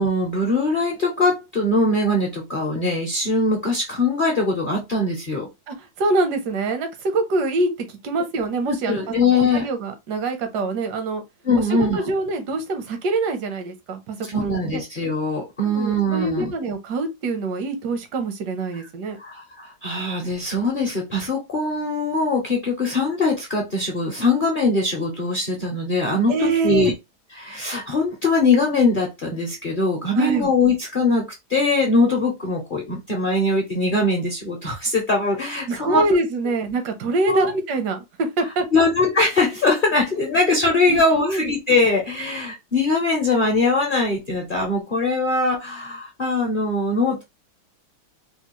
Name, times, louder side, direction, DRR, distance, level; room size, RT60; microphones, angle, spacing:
voice 1, 0.0-5.5 8.7-9.7 11.4-12.0 14.3-16.5 19.2-26.9 27.4-36.0 37.3-37.5 38.7-47.2, left 2 dB, 50° left, 0.6 m, -21 dB
voice 2, 5.7-7.7 8.0-9.0 9.3-11.2 11.6-14.8 15.6-19.2 26.3-26.9 30.1-30.5 35.7-38.8 40.2-40.3 40.9-41.5, right 3 dB, 80° right, 1.3 m, -25 dB
3.6 x 2.3 x 3.0 m
omnidirectional pair, 1.8 m